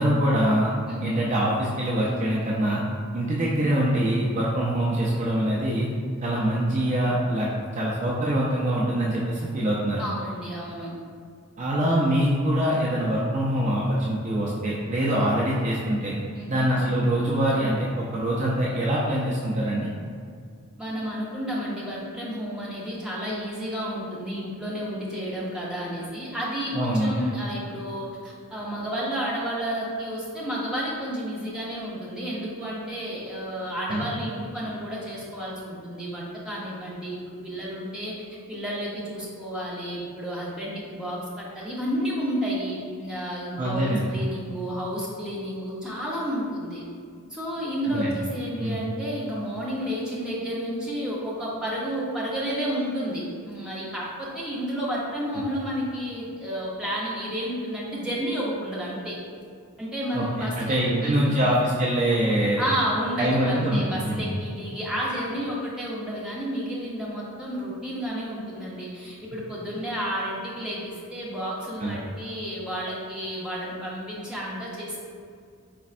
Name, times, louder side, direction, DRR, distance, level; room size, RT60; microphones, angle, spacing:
voice 1, 0.0-0.7 1.0-2.8 3.1-5.9 6.2-7.5 7.7-10.0 11.6-16.1 16.5-19.9 26.7-27.1 33.9-34.1 43.6-44.1 47.9-48.2 48.6-48.8 60.1-60.3 60.5-62.7 63.2-64.2 71.8-72.0, right 1 dB, 35° right, -5 dB, 0.4 m, -24 dB
voice 2, 0.9-1.2 10.0-10.9 16.3-16.8 20.8-38.1 38.5-46.8 47.3-59.2 59.8-61.5 62.6-75.0, equal, 5° right, -7 dB, 0.7 m, -31 dB
4.4 x 4.1 x 2.5 m, 2.2 s
head